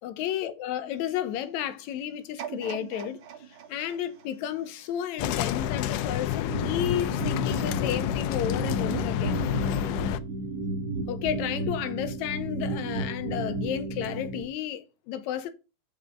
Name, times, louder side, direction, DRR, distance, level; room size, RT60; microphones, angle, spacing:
voice 1, 0.0-3.2 3.7-9.4 11.1-15.5, left 10 dB, 70° left, 2.1 m, -32 dB
sound 1, 2.4-5.5 6.0-6.1, right 9 dB, 80° right, 1.1 m, -42 dB
sound 2, 5.2-10.2, left 11 dB, 85° left, 2.2 m, -29 dB
sound 3, 6.5-14.4, right 2 dB, 50° right, 2.9 m, -33 dB
6.6 x 5.2 x 7.1 m
omnidirectional pair, 3.6 m